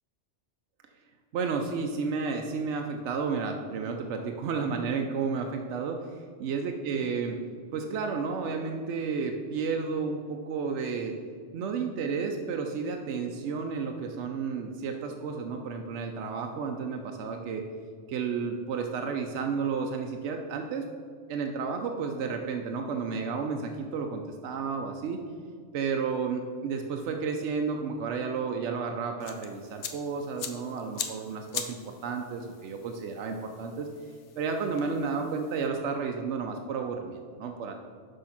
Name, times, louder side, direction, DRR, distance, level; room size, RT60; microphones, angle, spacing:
voice 1, 1.3-6.0 6.4-7.4 7.7-11.2 11.5-17.6 18.1-20.9 21.3-25.2 25.7-33.9 34.4-37.7, right 5 dB, 80° right, 3 dB, 0.9 m, -32 dB
sound 1, 29.2-35.7, left 7 dB, 80° left, 1.0 m, -42 dB
6.4 x 5.5 x 5.7 m, 2.1 s
omnidirectional pair, 1.2 m